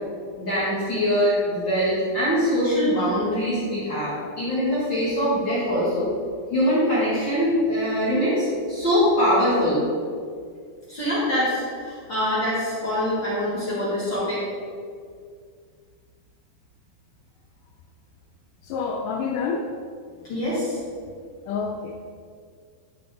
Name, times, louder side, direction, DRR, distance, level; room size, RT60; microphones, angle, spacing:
voice 1, 0.4-6.1 6.5-9.8 10.9-14.4 20.3-20.8, equal, 45° left, -9 dB, 1.7 m, -23 dB
voice 2, 18.6-19.7 21.5-22.1, left 5 dB, 90° left, 2 dB, 1.8 m, -28 dB
11.0 x 5.1 x 3.4 m, 2.1 s
omnidirectional pair, 4.2 m